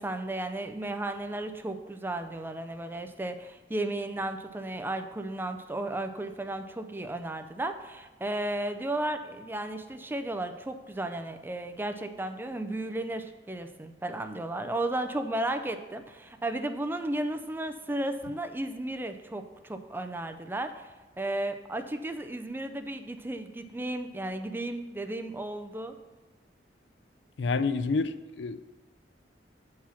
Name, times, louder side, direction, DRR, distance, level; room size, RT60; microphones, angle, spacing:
voice 1, 0.0-20.9 21.2-25.9, right 1 dB, 10° right, 7 dB, 0.4 m, -34 dB
voice 2, 27.4-28.6, left 4 dB, 75° left, 12 dB, 0.4 m, -28 dB
7.1 x 4.8 x 5.7 m, 1.3 s
head